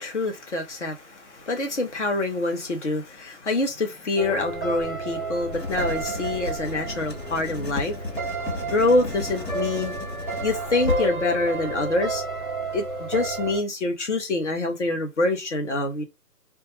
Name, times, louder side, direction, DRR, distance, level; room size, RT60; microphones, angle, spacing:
voice 1, 0.0-8.0 8.7-9.9 10.4-12.2 12.7-16.0, left 2 dB, 45° left, 0.8 m, -26 dB
sound 1, 4.2-13.6, right 2 dB, 35° right, 0.5 m, -31 dB
Writing, 5.5-11.1, left 3 dB, 85° left, 1.3 m, -34 dB
2.3 x 2.2 x 2.9 m
figure-of-eight pair, 165°, 48 cm